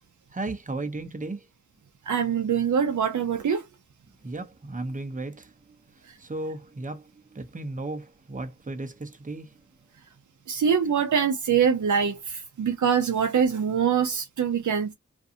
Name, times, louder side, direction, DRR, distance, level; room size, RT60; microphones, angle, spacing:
voice 1, 0.3-1.4 4.2-5.5 6.2-9.5, right 2 dB, 25° right, 0.6 m, -35 dB
voice 2, 2.1-3.7 6.1-6.2 10.5-14.9, right 7 dB, 85° right, 0.5 m, -24 dB
2.5 x 2.3 x 2.6 m
wide cardioid pair, 50°, 29 cm